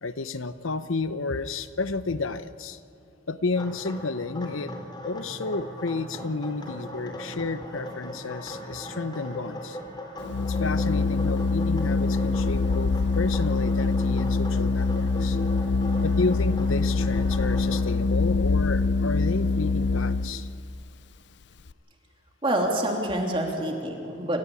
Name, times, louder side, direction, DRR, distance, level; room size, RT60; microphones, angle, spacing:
voice 1, 0.0-2.8 3.3-4.7 5.0-9.8 10.5-15.4 16.0-20.5, left 3 dB, 90° left, 13 dB, 0.9 m, -31 dB
sound 1, 3.5-17.8, equal, 20° left, 4.1 m, -39 dB
Organ, 10.2-20.5, left 3 dB, 60° left, 0.5 m, -24 dB
voice 2, 22.4-24.4, right 1 dB, 25° right, 1 dB, 3.1 m, -27 dB
28.0 x 15.0 x 8.5 m, 2.9 s
head